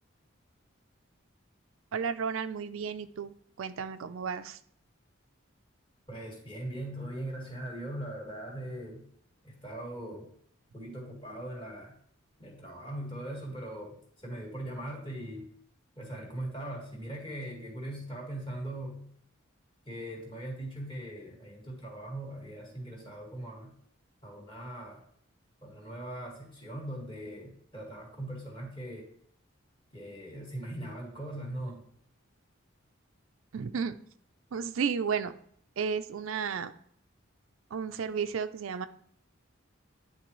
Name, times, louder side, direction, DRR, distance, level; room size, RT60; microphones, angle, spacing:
voice 1, 1.9-4.6 33.5-33.9 34.5-35.3 35.8-36.7 37.7-38.9, right 6 dB, 75° right, 10 dB, 0.4 m, -33 dB
voice 2, 6.1-9.0 9.4-10.3 10.7-11.9 12.4-15.5 16.0-19.0 19.9-23.7 24.2-25.0 25.6-29.1 29.9-31.8, right 1 dB, 25° left, -1 dB, 1.9 m, -40 dB
10.0 x 3.8 x 3.1 m, 0.66 s
head